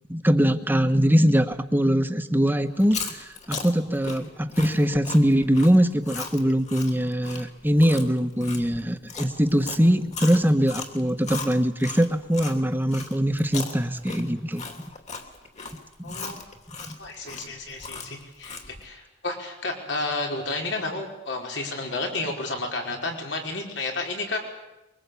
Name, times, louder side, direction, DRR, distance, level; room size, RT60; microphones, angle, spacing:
voice 1, 0.1-14.6 16.1-16.2 16.9-17.0, equal, 10° right, 8 dB, 1.3 m, -22 dB
Chewing mastication, 2.7-12.6 12.9-18.8, left 4 dB, 40° left, 3.1 m, -37 dB
voice 2, 16.0-16.4 17.0-24.4, left 2 dB, 75° left, 1 dB, 4.9 m, -31 dB
24.0 x 23.0 x 8.5 m, 0.97 s
head